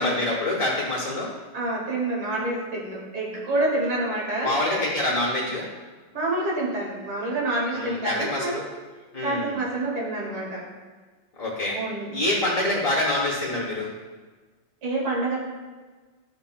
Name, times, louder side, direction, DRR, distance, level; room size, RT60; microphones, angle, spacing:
voice 1, 0.0-1.3 4.4-5.7 7.7-8.6 9.1-9.6 11.4-11.8 12.1-13.9, left 1 dB, 45° left, -4 dB, 1.2 m, -26 dB
voice 2, 1.5-4.5 6.1-8.6 9.2-10.6 11.7-12.1 14.8-15.4, right 2 dB, 75° right, -5 dB, 2.8 m, -27 dB
11.5 x 5.6 x 2.2 m, 1.3 s
omnidirectional pair, 2.4 m